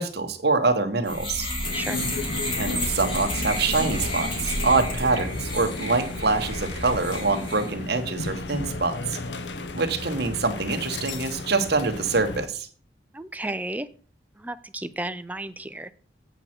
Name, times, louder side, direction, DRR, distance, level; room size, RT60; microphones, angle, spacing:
voice 1, 0.0-1.5 2.6-9.2 9.7-12.7, right 3 dB, 60° right, 5 dB, 1.3 m, -25 dB
sound 1, 1.1-7.7, left 1 dB, 25° left, 2.2 m, -31 dB
sound 2, 1.6-12.5, left 2 dB, 75° left, 0.8 m, -34 dB
voice 2, 13.1-13.9 14.4-15.9, right 1 dB, 10° right, 11 dB, 0.4 m, -33 dB
8.1 x 7.6 x 4.4 m, 0.41 s
head